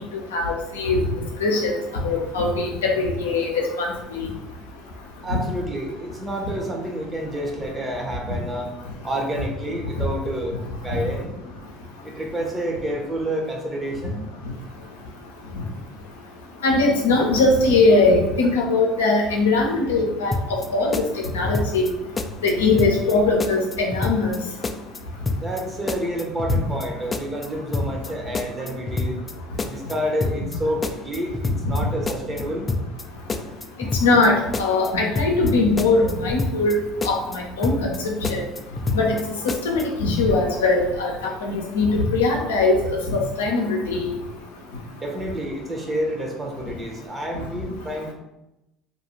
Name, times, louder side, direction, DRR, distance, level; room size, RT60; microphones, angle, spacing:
voice 1, 0.3-1.0 1.4-1.7 2.0-3.9 4.1-4.3 16.6-20.3 20.7-21.0 21.3-21.9 22.4-24.4 34.0-36.7 37.0-37.9 38.3-38.4 38.9-39.1 39.4-41.1 41.4-44.2, left 3 dB, 90° left, 0 dB, 0.5 m, -20 dB
voice 2, 5.2-8.7 9.0-10.6 10.8-11.3 12.0-14.3 25.3-29.2 29.7-32.7 45.0-48.1, right 1 dB, 25° right, 1 dB, 0.8 m, -29 dB
sound 1, 20.3-20.7 20.9-21.9 22.2-22.5 22.8-23.1 23.4-24.4 24.6-25.0 25.3-25.6 25.9-26.9 27.1-27.5 27.7-28.1 28.4-29.3 29.6-29.9 30.2-30.6 30.8-31.8 32.1-32.4 32.7-33.0 33.3-34.3 34.5-34.9 35.2-35.5 35.8-36.8 37.0-37.4 37.6-38.0 38.2-39.2 39.5-39.8, left 3 dB, 25° left, 0.3 m, -27 dB
2.6 x 2.3 x 3.0 m, 0.92 s
hypercardioid pair, 70°, 0 cm